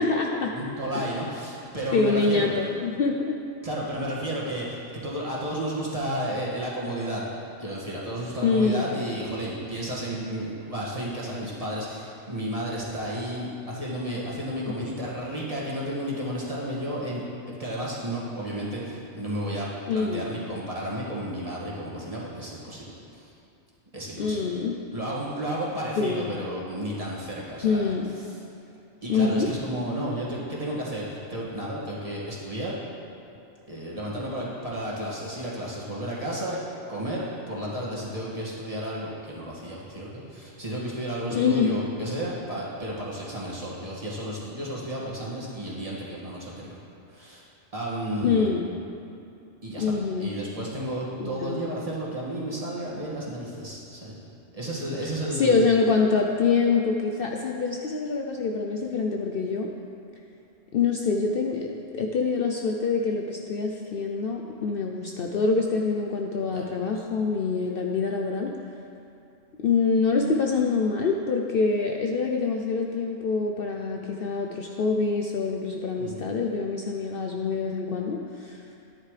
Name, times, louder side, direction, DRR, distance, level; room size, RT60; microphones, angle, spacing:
voice 1, 0.0-0.5 0.9-1.0 1.9-3.4 8.4-8.9 19.9-20.3 24.2-24.8 26.0-26.3 27.6-28.1 29.1-29.5 41.3-41.8 48.2-48.7 49.8-50.3 51.2-51.6 55.0-59.7 60.7-68.5 69.6-78.6, left 4 dB, 60° left, 1 dB, 0.7 m, -25 dB
voice 2, 0.5-2.5 3.6-7.3 7.6-23.3 23.9-24.4 24.9-27.9 28.2-28.4 29.0-32.8 33.7-36.6 36.9-46.8 47.1-47.4 47.7-48.5 49.6-54.2 54.5-55.7 66.5-66.6 76.0-76.3, right 1 dB, 30° right, -6 dB, 2.0 m, -32 dB
13.0 x 10.0 x 3.3 m, 2.7 s
omnidirectional pair, 1.3 m